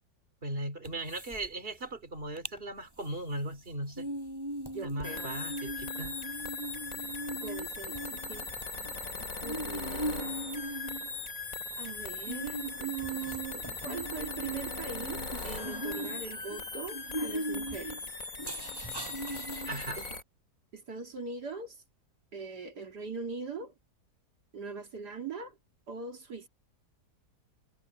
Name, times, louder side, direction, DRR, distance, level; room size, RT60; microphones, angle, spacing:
voice 1, 0.4-4.1 4.8-6.1 19.6-20.0, right 1 dB, 35° right, 3.4 m, -38 dB
sound 1, 0.8-1.5 1.7-1.8 2.2-2.6 3.0-20.1, right 1 dB, 15° right, 6.1 m, -40 dB
voice 2, 4.7-5.3 7.4-8.5 9.4-10.1 10.6-10.7 11.8-18.0 19.5-19.7 20.0-20.1 20.7-21.8 22.3-23.7 24.5-25.6 25.9-26.5, right 5 dB, 75° right, 3.0 m, -41 dB
sound 2, 5.0-20.2, left 3 dB, 55° left, 4.2 m, -39 dB
omnidirectional pair, 1.8 m